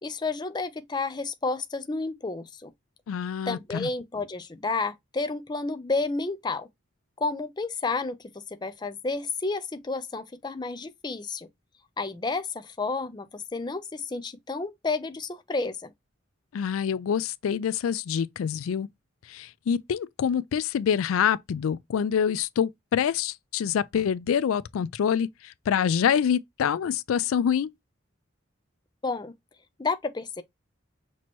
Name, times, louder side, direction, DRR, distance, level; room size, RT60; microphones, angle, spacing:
voice 1, 0.0-2.7 3.5-6.7 7.2-8.2 8.5-11.5 12.0-15.9 29.0-29.3 29.8-30.4, left 3 dB, 20° left, 0.4 m, -31 dB
voice 2, 3.1-3.9 16.5-18.9 19.3-27.7, left 8 dB, 90° left, 0.3 m, -26 dB
6.0 x 2.9 x 2.9 m
head